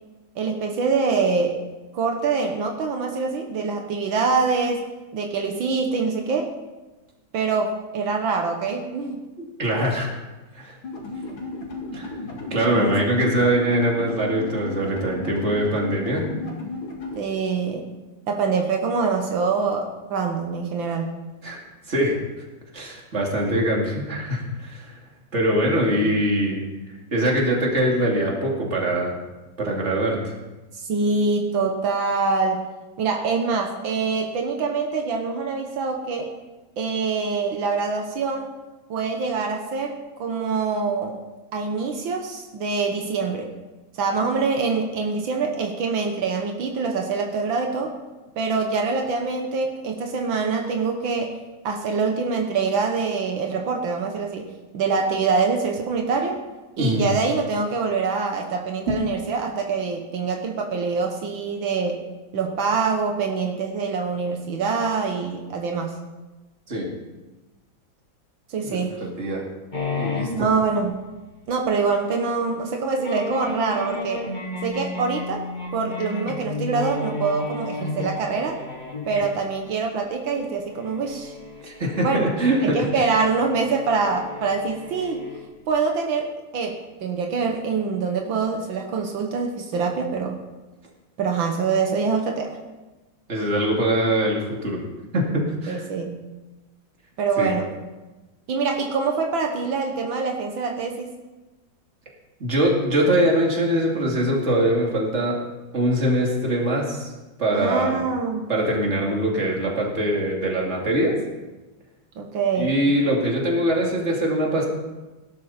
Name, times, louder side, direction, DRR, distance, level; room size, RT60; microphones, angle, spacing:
voice 1, 0.4-1.6 1.9-4.8 5.1-6.5 7.3-9.2 12.7-12.9 17.2-17.9 18.3-21.1 30.7-32.6 33.0-36.3 36.8-38.5 38.9-41.2 41.5-43.5 43.9-47.9 48.4-51.4 51.6-54.5 54.7-56.4 56.8-62.0 62.3-65.9 68.5-68.9 70.3-70.9 71.5-74.2 74.6-75.5 75.7-78.6 79.1-81.4 82.0-82.2 82.6-85.2 85.7-86.3 86.5-90.4 91.2-92.6 95.7-96.2 97.2-97.7 98.5-101.1 107.5-108.5 112.2-112.8, right 4 dB, 80° right, 3 dB, 1.9 m, -25 dB
voice 2, 9.4-10.1 10.5-10.8 11.9-12.1 12.5-16.3 21.4-21.6 21.9-22.2 22.7-25.0 25.3-26.6 27.1-29.1 29.6-30.3 56.8-57.1 58.9-59.0 66.7-66.9 68.6-69.4 70.0-70.5 81.6-83.1 93.3-94.8 95.1-95.8 97.4-97.5 102.4-105.4 105.7-107.1 107.4-108.0 108.5-111.2 112.6-114.7, right 1 dB, 35° right, -2 dB, 2.9 m, -23 dB
sound 1, 10.8-17.2, left 2 dB, 85° left, 3.1 m, -34 dB
sound 2, 69.7-71.3 71.7-71.8 72.1-72.2 72.9-85.6, left 2 dB, 25° left, 1.8 m, -33 dB
18.0 x 12.0 x 4.3 m, 1.1 s
omnidirectional pair, 2.1 m